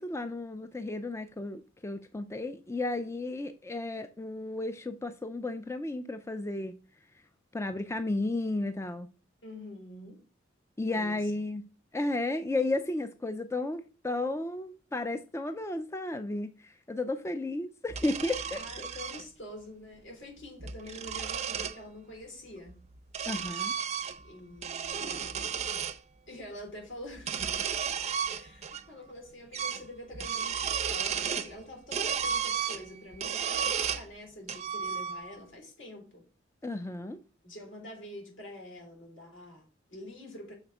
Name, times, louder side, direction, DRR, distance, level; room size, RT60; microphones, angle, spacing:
voice 1, 0.0-6.7 7.5-9.1 10.8-11.7 11.9-18.9 23.3-23.7 36.6-37.2, left 2 dB, 15° left, 0.4 m, -33 dB
voice 2, 9.4-10.2 10.9-11.3 18.5-22.8 24.2-25.4 26.3-28.0 28.3-36.2 37.4-40.5, left 1 dB, 65° left, 3.5 m, -46 dB
sound 1, 17.9-19.2 20.4-21.8 22.7-24.3 24.6-26.0 27.2-28.8 29.1-29.2 29.5-29.9 30.1-31.5 31.9-34.1 34.5-35.4, right 7 dB, 35° right, 0.5 m, -33 dB
6.5 x 4.2 x 5.9 m
head